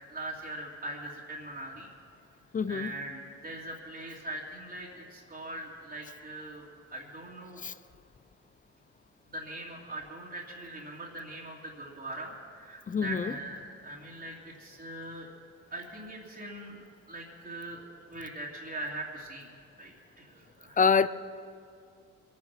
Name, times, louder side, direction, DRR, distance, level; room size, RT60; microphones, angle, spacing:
voice 1, 0.1-1.9 2.7-7.6 9.3-15.3 15.7-17.8 18.1-19.5 19.8-20.8, right 1 dB, 30° right, 2.6 m, -41 dB
voice 2, 2.5-2.9 7.6-7.7 12.9-13.3 20.8-21.1, left 5 dB, 25° left, 0.5 m, -25 dB
22.5 x 9.7 x 5.9 m
cardioid pair, 90°, 30 cm